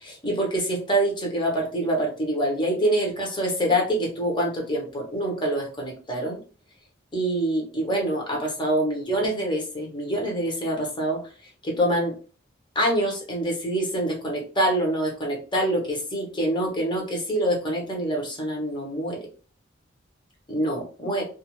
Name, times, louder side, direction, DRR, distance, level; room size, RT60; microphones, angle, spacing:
voice 1, 0.0-6.4 7.1-11.2 11.6-12.1 12.7-19.2 20.5-21.3, right 1 dB, 25° left, 0 dB, 0.8 m, -25 dB
2.4 x 2.3 x 2.9 m, 0.38 s
head